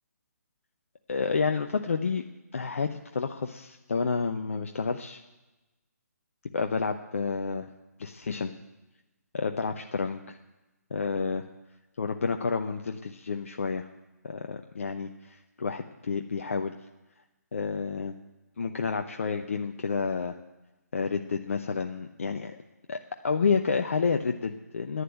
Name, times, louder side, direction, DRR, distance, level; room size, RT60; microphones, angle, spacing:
voice 1, 1.1-2.2 2.5-5.2 6.5-7.7 8.0-8.5 9.3-10.4 10.9-11.4 12.0-13.9 14.2-16.8 17.5-18.2 18.6-20.4 20.9-22.6 22.9-23.0 23.2-25.0, left 5 dB, 50° left, 5 dB, 0.8 m, -30 dB
11.0 x 9.7 x 9.0 m, 1.1 s
figure-of-eight pair, 140°, 9 cm